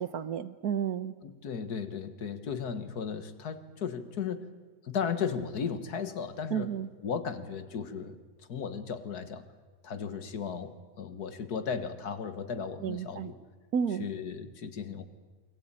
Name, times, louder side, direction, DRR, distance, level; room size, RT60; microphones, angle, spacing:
voice 1, 0.0-1.1 6.5-6.9 12.8-13.3 13.7-14.1, right 8 dB, 80° right, 14 dB, 1.5 m, -31 dB
voice 2, 1.2-4.5 4.8-6.7 7.0-8.2 8.5-9.4 9.8-13.4 14.0-15.1, left 6 dB, 85° left, 11 dB, 2.0 m, -35 dB
28.0 x 22.0 x 9.0 m, 1.3 s
omnidirectional pair, 1.6 m